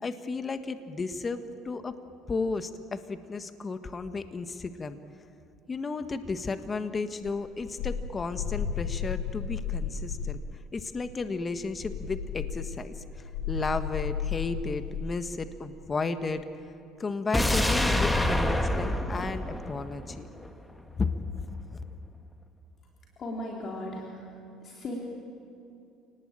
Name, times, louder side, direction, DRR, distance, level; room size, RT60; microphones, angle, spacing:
voice 1, 0.0-1.9 2.3-5.0 5.7-10.4 10.7-16.4 17.0-20.3 21.0-21.1 21.5-21.8, left 4 dB, 25° left, 9 dB, 1.4 m, -33 dB
sound 1, 7.2-10.5 11.7-15.1, left 7 dB, 75° left, 2.8 m, -34 dB
sound 2, 17.3-20.5 20.8-20.9, left 1 dB, 5° left, 1.6 m, -27 dB
voice 2, 23.2-24.3 24.6-25.0, left 1 dB, 40° left, -2 dB, 3.6 m, -37 dB
28.5 x 19.0 x 9.0 m, 2.7 s
cardioid pair, 110°, 0 cm